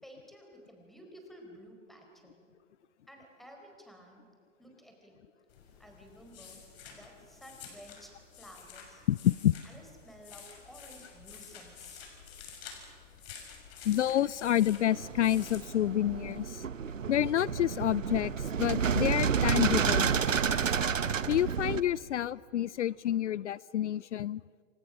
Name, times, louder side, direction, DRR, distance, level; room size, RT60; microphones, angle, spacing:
voice 1, 0.0-2.5 3.1-4.2 4.6-5.2 5.8-6.6 6.9-9.0 9.6-12.0, equal, ahead, 2 dB, 4.3 m, -53 dB
sound 1, 5.5-16.5, left 6 dB, 50° left, 6.4 m, -50 dB
voice 2, 9.1-9.5 13.8-16.7 17.1-20.5 21.3-24.4, left 12 dB, 65° left, 22 dB, 0.5 m, -29 dB
sound 2, 14.9-21.8, right 7 dB, 80° right, 1.1 m, -30 dB
29.0 x 24.0 x 6.3 m, 2.4 s
figure-of-eight pair, 120°, 38 cm